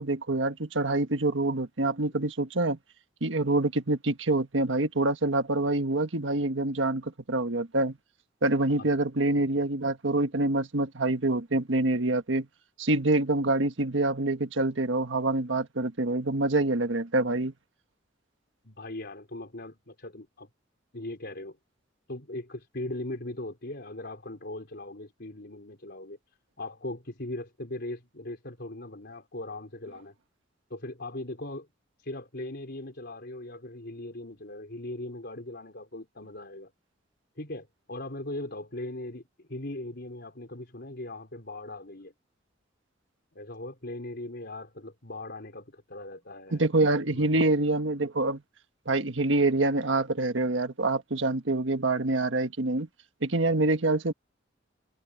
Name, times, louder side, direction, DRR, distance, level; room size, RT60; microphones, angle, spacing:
voice 1, 0.0-2.8 3.2-8.0 8.4-12.5 12.8-17.5 46.5-48.4 48.8-52.9 53.2-54.1, right 2 dB, 75° right, 1.5 m, -26 dB
voice 2, 18.6-20.5 20.9-21.6 22.1-26.2 26.6-30.1 30.7-31.7 32.0-36.7 37.4-42.1 43.3-46.6 47.1-47.4, left 1 dB, 60° left, 4.3 m, -39 dB
head